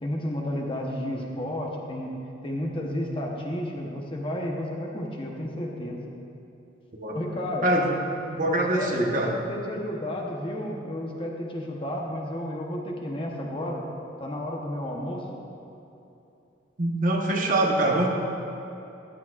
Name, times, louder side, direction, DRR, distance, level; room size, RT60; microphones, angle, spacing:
voice 1, 0.0-2.1 2.4-6.0 7.1-7.7 8.5-13.8 14.2-15.2, left 1 dB, 25° left, 0 dB, 0.9 m, -32 dB
voice 2, 7.6-7.9 8.3-9.4 16.8-18.1, right 1 dB, 45° right, 0 dB, 1.1 m, -24 dB
14.0 x 10.5 x 2.4 m, 2.9 s
head